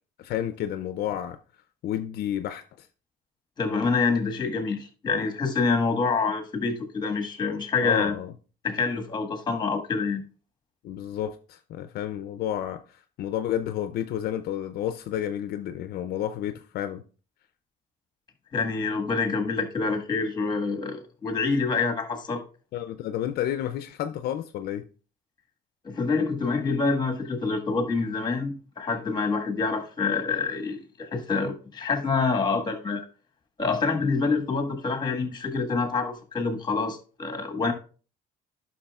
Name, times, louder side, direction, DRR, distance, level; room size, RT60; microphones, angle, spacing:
voice 1, 0.2-1.4 1.8-2.9 7.8-8.3 10.8-17.0 22.7-24.9, left 11 dB, 65° left, 0.5 m, -31 dB
voice 2, 3.6-8.1 8.6-10.2 18.5-22.4 25.8-33.1 33.6-37.7, left 4 dB, 25° left, 1.5 m, -26 dB
11.5 x 5.8 x 2.3 m
cardioid pair, 110°, 17 cm